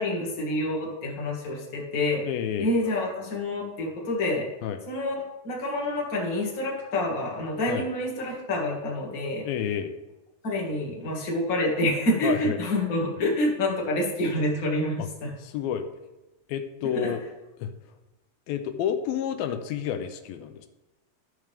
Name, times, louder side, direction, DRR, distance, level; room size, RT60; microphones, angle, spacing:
voice 1, 0.0-2.2 2.6-4.5 4.9-9.4 10.4-15.3 16.9-17.1, left 1 dB, 35° left, -2 dB, 1.7 m, -27 dB
voice 2, 2.2-2.7 4.6-4.8 7.7-7.9 9.4-9.9 12.2-12.6 15.0-15.1 15.4-15.8 16.5-17.2 17.6-17.7 18.5-20.7, left 9 dB, 85° left, 7 dB, 2.5 m, -29 dB
12.0 x 6.6 x 3.4 m, 1.0 s
omnidirectional pair, 4.1 m